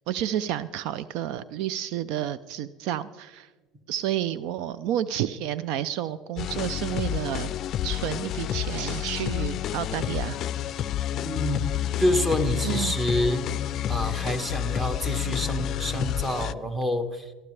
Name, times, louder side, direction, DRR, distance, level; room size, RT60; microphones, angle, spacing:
voice 1, 0.1-3.5 3.9-7.5 7.8-10.4 12.6-12.9, right 11 dB, 65° right, 16 dB, 0.4 m, -30 dB
sound 1, 6.4-16.5, left 11 dB, 50° left, 0.4 m, -29 dB
voice 2, 11.2-11.7 12.0-13.5 13.9-17.3, equal, 15° right, 8 dB, 1.5 m, -27 dB
19.0 x 13.0 x 3.3 m, 1.3 s
supercardioid pair, 105°, 0 cm